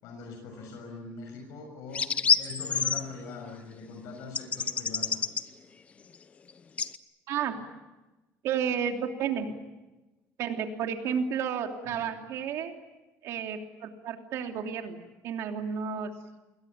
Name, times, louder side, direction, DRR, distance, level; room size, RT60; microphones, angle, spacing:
voice 1, 0.0-2.1 2.4-5.2 11.9-12.1, left 4 dB, 70° left, 2 dB, 6.5 m, -42 dB
sound 1, 1.9-3.0 4.3-5.4 6.8-7.0, left 6 dB, 25° left, 0.8 m, -26 dB
voice 2, 7.3-7.6 8.4-9.5 10.4-12.7 13.2-15.0 15.2-16.1, right 7 dB, 55° right, 4 dB, 3.1 m, -31 dB
28.5 x 22.0 x 8.8 m, 1.1 s
cardioid pair, 175°, 6 cm